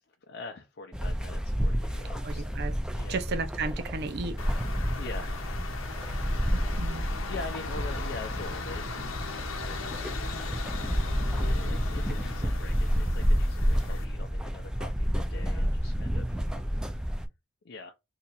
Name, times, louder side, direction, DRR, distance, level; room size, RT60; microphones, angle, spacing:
voice 1, 0.3-2.4 2.9-3.2 4.9-5.5 7.3-10.1 11.4-16.9 17.6-17.9, left 3 dB, 60° left, 0.5 m, -43 dB
sound 1, 0.9-17.3, equal, 5° right, 0.4 m, -30 dB
voice 2, 2.2-2.7 3.1-4.4 6.5-7.0, right 3 dB, 55° right, 0.6 m, -34 dB
sound 2, 4.4-14.0, left 4 dB, 85° left, 0.7 m, -38 dB
2.8 x 2.4 x 4.0 m
head